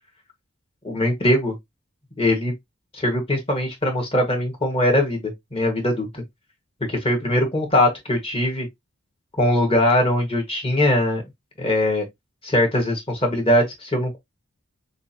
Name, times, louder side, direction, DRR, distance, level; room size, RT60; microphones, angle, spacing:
voice 1, 0.8-1.5 2.2-2.5 2.9-6.2 6.9-8.7 9.4-11.2 11.6-12.0 12.4-14.2, left 1 dB, 25° left, 1.5 m, -21 dB
6.0 x 2.6 x 2.8 m
head